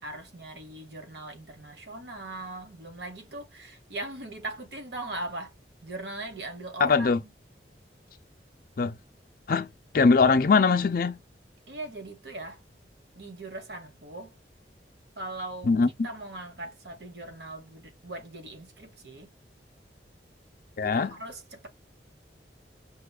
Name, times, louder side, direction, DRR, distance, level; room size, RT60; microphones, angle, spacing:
voice 1, 0.0-5.5 5.8-7.3 11.7-12.6 13.1-14.4 15.2-15.7 16.0-19.3 20.8-21.7, right 2 dB, 70° right, 1.1 m, -40 dB
voice 2, 6.8-7.2 8.8-9.0 9.5-9.7 9.9-11.2 15.7-15.9 20.8-21.1, left 4 dB, 55° left, 0.5 m, -21 dB
5.7 x 2.2 x 2.3 m
head